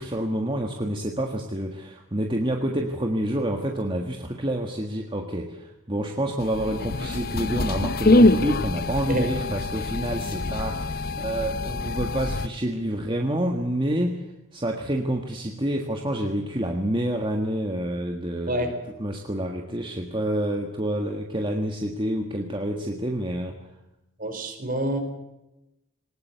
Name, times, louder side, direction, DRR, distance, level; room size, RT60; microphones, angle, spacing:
voice 1, 0.0-18.7 19.0-23.6, right 1 dB, 25° right, 3 dB, 1.6 m, -28 dB
sound 1, 6.4-12.5, left 2 dB, 45° left, 0.8 m, -24 dB
voice 2, 18.5-18.8 24.2-25.0, right 1 dB, 45° right, 6 dB, 4.3 m, -27 dB
20.0 x 19.0 x 8.1 m, 0.94 s
head